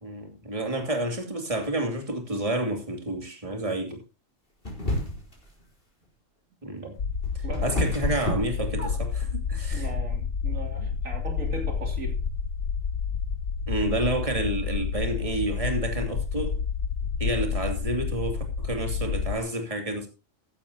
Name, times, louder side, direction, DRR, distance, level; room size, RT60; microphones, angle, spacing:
voice 1, 0.0-4.0 6.6-6.9 7.3-9.9 10.8-10.9 13.7-16.6 17.2-20.1, right 1 dB, 25° right, 2.8 m, -30 dB
sound 1, 4.7-5.4 6.9-9.2, left 1 dB, 45° left, 4.4 m, -29 dB
sound 2, 7.0-19.4, left 6 dB, 75° left, 1.4 m, -29 dB
voice 2, 9.7-12.2, right 2 dB, 90° right, 3.4 m, -38 dB
14.5 x 11.5 x 2.8 m
omnidirectional pair, 1.3 m